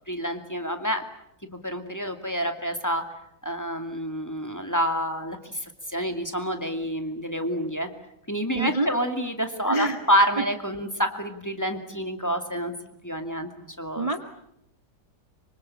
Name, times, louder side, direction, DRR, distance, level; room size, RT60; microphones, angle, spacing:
voice 1, 0.1-1.0 1.6-3.0 3.4-7.9 8.3-12.7 13.0-13.5 13.8-14.1, equal, 10° left, 6 dB, 2.4 m, -28 dB
voice 2, 8.5-8.9 9.7-10.0 14.0-14.2, right 2 dB, 20° right, 6 dB, 1.5 m, -26 dB
25.5 x 25.5 x 8.7 m, 0.76 s
omnidirectional pair, 2.0 m